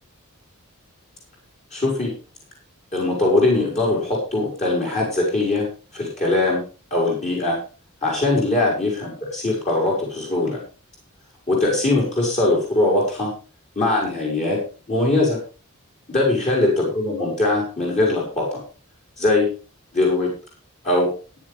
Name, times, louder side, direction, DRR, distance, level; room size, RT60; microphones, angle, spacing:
voice 1, 1.7-2.1 2.9-5.7 5.9-6.6 6.9-7.6 8.0-10.6 11.5-13.3 13.8-14.6 14.9-15.4 16.1-18.6 19.2-19.5 19.9-20.3 20.8-21.1, left 2 dB, 30° left, -4 dB, 5.9 m, -21 dB
16.0 x 10.5 x 3.6 m, 0.35 s
head